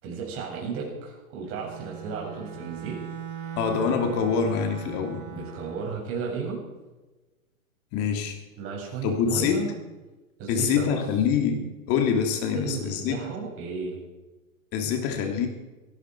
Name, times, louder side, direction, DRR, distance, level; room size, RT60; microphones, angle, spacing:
voice 1, 0.0-3.0 3.3-3.6 5.3-6.6 8.6-9.7 10.4-11.0 12.5-14.0, right 5 dB, 30° right, -1 dB, 7.1 m, -34 dB
Bowed string instrument, 1.5-6.0, right 8 dB, 55° right, 2.8 m, -40 dB
voice 2, 3.6-5.2 7.9-8.4 9.0-9.6 10.5-13.2 14.7-15.5, left 6 dB, 35° left, 4 dB, 2.9 m, -25 dB
17.5 x 16.5 x 4.7 m, 1.1 s
hypercardioid pair, 130°, 42 cm